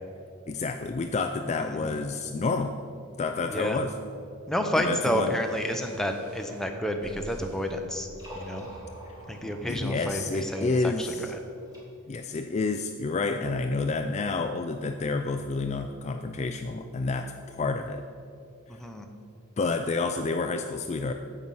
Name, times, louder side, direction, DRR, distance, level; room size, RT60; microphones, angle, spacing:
voice 1, 0.5-2.8 3.2-3.9 4.8-5.4 9.1-9.2 9.7-11.3 12.1-18.0 18.7-18.9 19.6-21.1, left 3 dB, 30° left, 6 dB, 0.3 m, -29 dB
voice 2, 1.5-1.9 3.5-3.8 4.5-8.1 8.3-8.7 9.3-11.4 18.7-19.1, equal, ahead, 3 dB, 0.7 m, -30 dB
sound 1, 5.4-11.1, right 1 dB, 85° right, 1.2 m, -50 dB
sound 2, 5.5-7.7 8.1-11.8, right 1 dB, 15° right, 2.5 m, -48 dB
9.4 x 7.7 x 5.6 m, 2.5 s
head